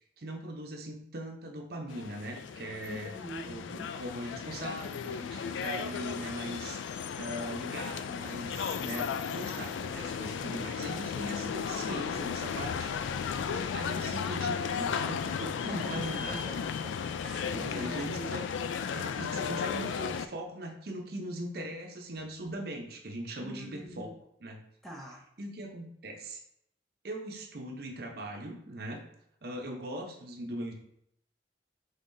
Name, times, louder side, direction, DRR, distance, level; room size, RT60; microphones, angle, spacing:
voice 1, 0.2-3.1 3.4-13.1 13.4-16.5 17.6-18.4 18.9-24.1 24.4-24.6 25.4-26.4 27.0-29.0 29.4-30.7, right 1 dB, 55° right, 2 dB, 0.7 m, -40 dB
sound 1, 1.9-20.3, left 6 dB, 80° left, 0.3 m, -35 dB
voice 2, 2.9-3.9 8.8-8.9 15.6-16.9 17.2-18.3 23.4-24.1 24.8-25.2, equal, ahead, -2 dB, 0.5 m, -43 dB
5.5 x 3.7 x 2.6 m, 0.73 s
head